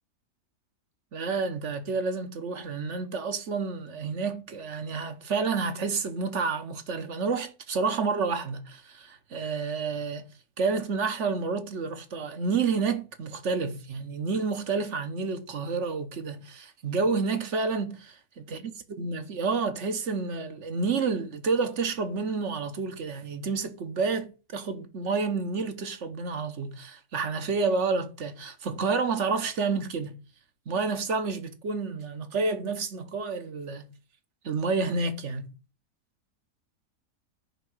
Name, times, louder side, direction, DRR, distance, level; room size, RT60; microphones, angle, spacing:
voice 1, 1.1-10.3 10.6-18.6 19.0-30.2 30.7-33.9 34.4-35.5, right 4 dB, 50° right, 1.3 m, -29 dB
9.6 x 3.7 x 6.4 m
omnidirectional pair, 1.6 m